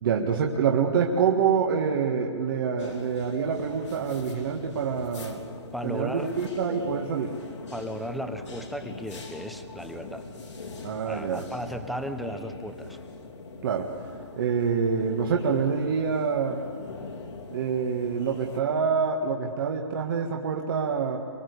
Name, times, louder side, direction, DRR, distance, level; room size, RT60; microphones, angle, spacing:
voice 1, 0.0-5.4 5.8-7.3 10.8-11.4 13.6-13.9 14.4-16.6 17.5-21.2, right 6 dB, 50° right, 1 dB, 1.7 m, -26 dB
sound 1, 2.8-18.6, left 4 dB, 80° left, 3.4 m, -42 dB
voice 2, 5.7-6.3 7.7-10.2 11.0-13.0, equal, ahead, 7 dB, 0.9 m, -35 dB
24.0 x 23.0 x 8.3 m, 2.2 s
hypercardioid pair, 160°, 15 cm